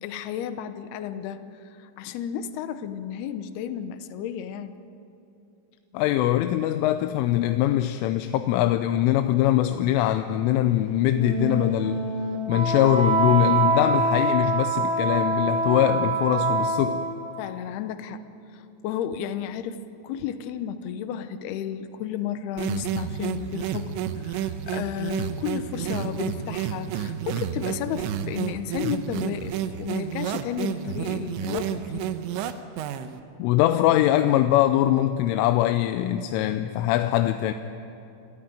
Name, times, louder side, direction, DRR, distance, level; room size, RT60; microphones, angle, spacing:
voice 1, 0.0-4.8 17.4-18.2 18.5-23.9 24.2-32.1, left 9 dB, 75° left, 10 dB, 2.5 m, -33 dB
voice 2, 5.9-12.0 12.5-17.0 33.4-37.5, left 13 dB, 90° left, 9 dB, 3.2 m, -22 dB
Wind instrument woodwind instrument, 11.1-17.3, right 3 dB, 40° right, 0.9 m, -25 dB
sound 1, 22.6-33.2, right 9 dB, 80° right, 3.1 m, -30 dB
29.0 x 15.0 x 9.0 m, 2.8 s
omnidirectional pair, 5.6 m